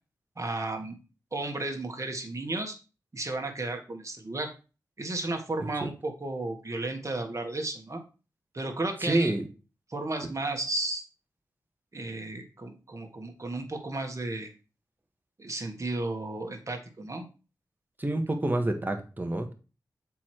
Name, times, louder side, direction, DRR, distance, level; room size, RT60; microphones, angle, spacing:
voice 1, 0.4-1.0 1.3-2.8 3.1-4.5 5.0-8.0 8.5-9.3 9.9-11.0 11.9-14.5 15.4-17.2, right 2 dB, 40° right, 3 dB, 2.0 m, -33 dB
voice 2, 9.0-9.5 18.0-19.5, right 1 dB, 25° right, 5 dB, 1.6 m, -28 dB
7.0 x 4.9 x 4.6 m, 0.33 s
cardioid pair, 45°, 8 cm